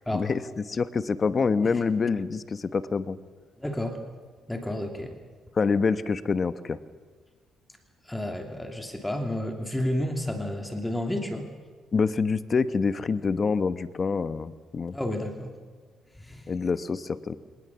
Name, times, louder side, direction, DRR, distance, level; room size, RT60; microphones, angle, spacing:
voice 1, 0.1-3.2 5.6-6.8 11.9-14.9 16.5-17.4, left 5 dB, 40° left, 13 dB, 1.1 m, -26 dB
voice 2, 3.6-4.0 4.5-5.1 8.1-11.5 14.9-15.5 16.2-16.5, left 1 dB, 10° left, 4 dB, 2.7 m, -31 dB
24.5 x 19.0 x 7.2 m, 1.5 s
cardioid pair, 90°, 0 cm